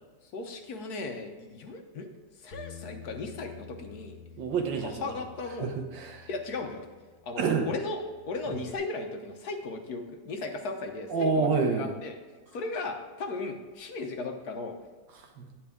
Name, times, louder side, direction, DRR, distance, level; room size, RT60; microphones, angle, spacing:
voice 1, 0.3-2.1 2.4-4.2 4.8-5.7 6.3-6.9 7.2-8.0 8.3-12.1 12.5-14.8, left 3 dB, 60° left, 4 dB, 1.4 m, -36 dB
Bass guitar, 2.5-8.8, left 6 dB, 35° left, 1.5 m, -50 dB
voice 2, 4.4-5.2 5.6-6.3 7.4-7.7 8.5-8.6 11.1-11.9 15.1-15.5, right 4 dB, 90° right, 4 dB, 1.8 m, -28 dB
9.2 x 8.8 x 3.6 m, 1.4 s
omnidirectional pair, 1.9 m